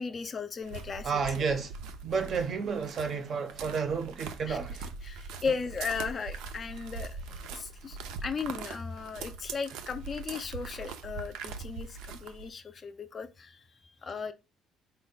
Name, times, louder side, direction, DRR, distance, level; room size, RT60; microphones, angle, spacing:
voice 1, 0.0-1.5 2.1-2.2 4.5-4.8 5.0-14.3, left 5 dB, 25° left, 0.3 m, -37 dB
sound 1, 0.6-12.5, right 5 dB, 90° right, 0.5 m, -42 dB
voice 2, 1.0-1.7 2.0-4.8, right 5 dB, 35° right, 0.5 m, -31 dB
4.3 x 2.1 x 3.9 m
cardioid pair, 170°, 0 cm